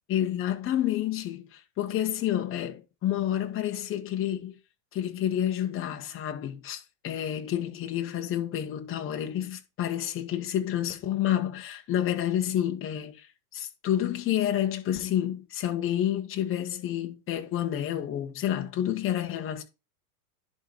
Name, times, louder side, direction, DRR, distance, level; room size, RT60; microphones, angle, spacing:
voice 1, 0.1-4.6 4.9-13.3 13.5-19.6, left 11 dB, 30° left, 1.6 m, -29 dB
10.5 x 4.2 x 4.8 m
supercardioid pair, 140°, 46 cm